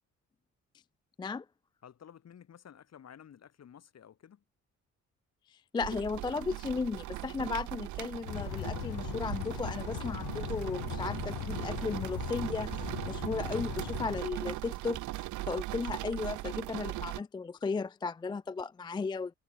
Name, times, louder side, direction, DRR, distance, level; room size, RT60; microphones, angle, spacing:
voice 1, 1.8-4.4, left 8 dB, 60° left, 7.3 m, -53 dB
voice 2, 5.5-12.7 13.1-19.3, left 4 dB, 15° left, 0.3 m, -35 dB
sound 1, 5.8-17.2, right 18 dB, 75° right, 0.5 m, -39 dB
sound 2, 8.3-14.2, left 16 dB, 80° left, 0.9 m, -39 dB
cardioid pair, 90°, 30 cm